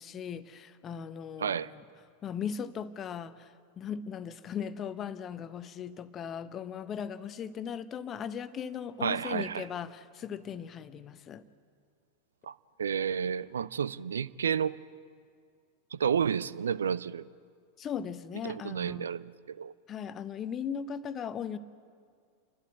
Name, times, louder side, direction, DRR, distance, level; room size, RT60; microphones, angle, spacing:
voice 1, 0.0-1.8 2.2-11.4 17.8-19.1 19.9-21.6, left 8 dB, 25° left, 0.8 m, -38 dB
voice 2, 1.4-1.7 9.0-9.7 12.4-12.5 12.8-14.8 15.9-17.2 18.4-19.7, right 7 dB, 70° right, 0.4 m, -31 dB
29.5 x 12.5 x 8.2 m
figure-of-eight pair, 90°, 0 cm